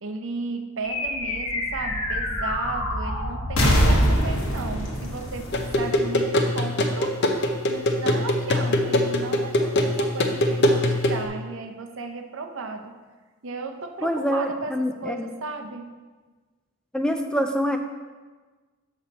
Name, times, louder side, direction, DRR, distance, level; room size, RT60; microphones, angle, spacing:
voice 1, 0.0-7.3 7.7-12.9 13.4-15.9, right 3 dB, 65° right, 5 dB, 0.7 m, -35 dB
sound 1, 0.8-6.5, equal, 80° left, 1.3 m, -25 dB
sound 2, 5.5-11.2, left 1 dB, 55° left, 0.7 m, -23 dB
voice 2, 14.0-15.3 16.9-17.8, equal, 5° left, 5 dB, 0.4 m, -25 dB
7.1 x 6.2 x 4.0 m, 1.3 s
head